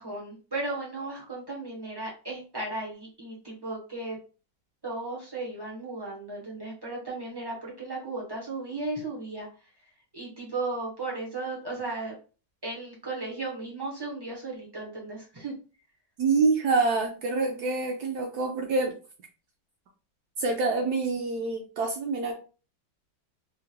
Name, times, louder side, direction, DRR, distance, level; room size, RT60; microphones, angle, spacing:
voice 1, 0.0-4.2 4.8-9.5 10.1-12.1 12.6-15.5, right 2 dB, 40° right, -4 dB, 0.3 m, -35 dB
voice 2, 16.2-18.9 20.4-22.3, right 3 dB, 70° right, 2 dB, 1.0 m, -26 dB
3.7 x 2.2 x 2.7 m, 0.35 s
omnidirectional pair, 2.0 m